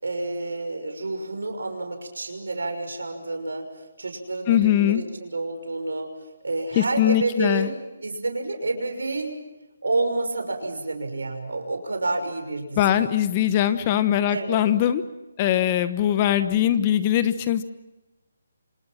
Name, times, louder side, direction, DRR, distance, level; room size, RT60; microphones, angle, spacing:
voice 1, 0.0-9.4 9.8-13.0 14.3-14.6, right 2 dB, 85° right, 5 dB, 6.0 m, -29 dB
voice 2, 4.5-5.0 6.8-7.7 12.8-15.0 15.4-17.6, left 11 dB, 30° left, 12 dB, 1.1 m, -21 dB
28.0 x 26.5 x 5.9 m, 1.0 s
hypercardioid pair, 155°, 0 cm